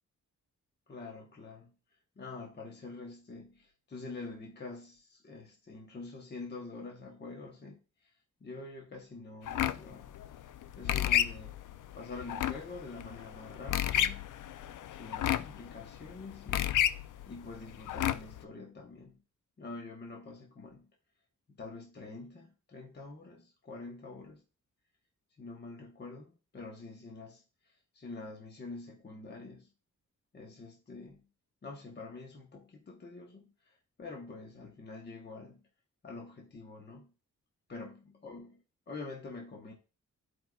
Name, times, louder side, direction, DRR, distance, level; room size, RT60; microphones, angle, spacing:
voice 1, 0.9-1.7 2.2-8.1 8.4-10.1 10.8-11.6 11.9-14.2 14.9-16.7 17.3-19.2 19.6-20.9 21.5-24.4 25.4-27.4 27.9-29.7 30.3-31.3 31.6-35.6 36.0-37.1 37.7-38.5 38.9-39.7, left 3 dB, 35° left, 1.0 m, -46 dB
sound 1, 9.5-18.4, left 11 dB, 80° left, 0.5 m, -32 dB
13.0 x 4.7 x 2.3 m
wide cardioid pair, 145°, 30 cm